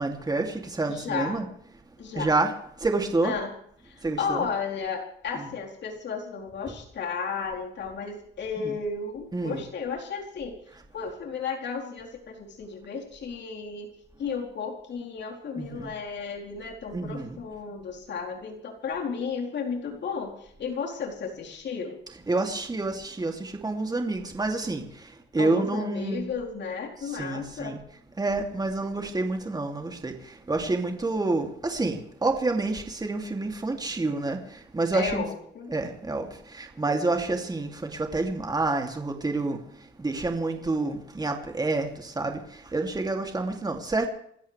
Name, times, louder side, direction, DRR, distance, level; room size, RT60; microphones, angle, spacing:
voice 1, 0.0-1.5 2.1-3.4 4.0-4.4 5.3-5.5 6.7-6.8 8.6-8.8 9.3-9.6 10.7-10.8 15.6-15.9 16.9-17.4 22.1-26.3 27.0-27.8 28.2-35.2 35.7-44.1, right 2 dB, 20° right, 3 dB, 2.8 m, -28 dB
voice 2, 0.9-1.4 2.0-2.3 3.2-3.5 3.8-10.5 10.9-13.9 14.2-22.0 25.4-27.7 34.9-35.7, left 5 dB, 65° left, 0 dB, 4.3 m, -33 dB
29.0 x 13.5 x 3.4 m, 0.71 s
cardioid pair, 90°, 20 cm